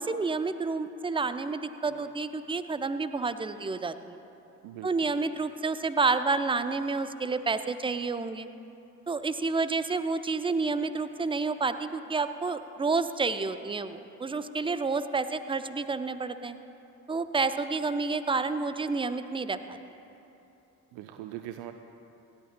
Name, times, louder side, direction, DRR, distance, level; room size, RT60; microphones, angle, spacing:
voice 1, 0.0-4.2 4.8-8.5 9.1-16.6 17.1-19.8, right 4 dB, 10° right, 12 dB, 0.5 m, -29 dB
voice 2, 4.6-4.9 20.9-21.7, right 13 dB, 55° right, 8 dB, 0.6 m, -41 dB
27.5 x 11.5 x 2.2 m, 2.8 s
figure-of-eight pair, 45°, 48 cm